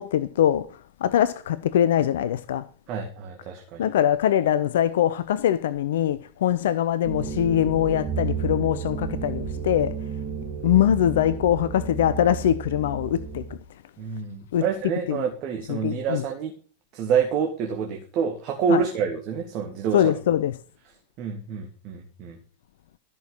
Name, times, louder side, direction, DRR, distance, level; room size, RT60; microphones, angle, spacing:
voice 1, 0.0-2.7 3.8-9.9 10.6-13.6 14.5-14.6 15.1-15.3 15.7-16.2 18.7-18.8 19.9-20.6, left 10 dB, 60° left, 0.6 m, -23 dB
voice 2, 2.9-3.8 14.0-16.5 16.9-20.1 21.2-22.4, right 6 dB, 40° right, 2.0 m, -27 dB
sound 1, 7.0-13.6, right 6 dB, 20° right, 2.6 m, -32 dB
13.5 x 6.2 x 7.2 m
figure-of-eight pair, 90°, 0 cm